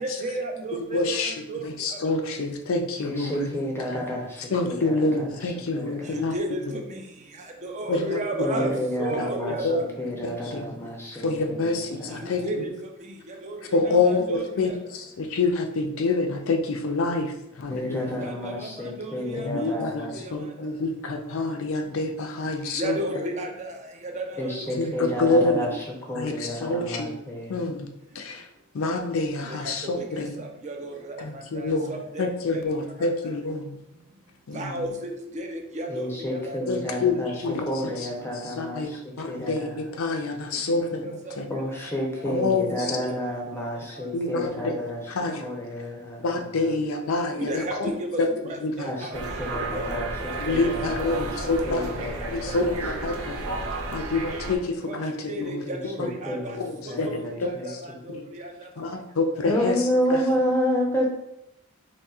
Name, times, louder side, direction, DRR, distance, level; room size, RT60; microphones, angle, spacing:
voice 1, 0.0-1.0 1.5-1.6 6.1-6.6 7.6-8.7 9.0-9.8 12.4-12.7 13.4-13.6 14.3-14.5 18.4-18.5 22.8-23.5 24.2-24.3 30.0-30.1 30.6-30.9 31.9-32.3 32.5-32.6 34.5-35.1 35.4-36.0 36.3-36.4 47.5-47.7 48.8-49.1 49.7-50.0 54.9-55.0 55.3-56.0 56.2-56.4 57.0-57.2, right 1 dB, 35° right, 2 dB, 0.5 m, -31 dB
voice 2, 0.7-3.5 4.5-6.3 6.7-6.8 7.9-8.7 9.2-9.3 9.6-9.8 10.2-10.7 11.1-12.6 13.7-18.2 19.3-23.0 24.8-25.7 26.2-27.1 27.5-27.9 28.1-28.5 28.7-30.3 31.2-33.8 34.5-34.9 36.7-38.1 38.4-41.5 42.2-43.0 44.1-44.8 45.1-45.5 46.2-47.9 48.2-48.3 48.6-48.9 50.4-53.4 53.9-55.6 56.0-56.1 56.6-57.8 58.1-58.3 58.8-59.8 60.1-60.2, left 3 dB, 70° left, 4 dB, 0.5 m, -27 dB
voice 3, 3.0-5.4 5.7-6.2 8.4-12.4 17.7-20.2 24.4-25.7 26.0-27.6 35.9-37.3 37.6-39.8 41.5-45.0 45.4-46.7 48.8-51.3 51.6-54.0 55.6-58.0 59.4-61.1, equal, 10° left, -1 dB, 0.6 m, -31 dB
sound 1, 49.1-54.6, right 3 dB, 85° right, 0.6 m, -33 dB
4.2 x 3.0 x 2.4 m, 0.83 s
head